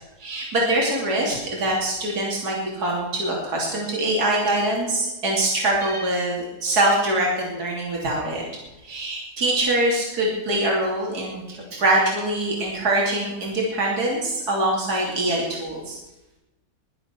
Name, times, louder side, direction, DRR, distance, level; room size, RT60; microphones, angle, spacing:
voice 1, 0.2-8.4 8.8-16.0, right 1 dB, 70° right, -3 dB, 3.6 m, -23 dB
21.5 x 7.7 x 6.9 m, 0.98 s
omnidirectional pair, 1.7 m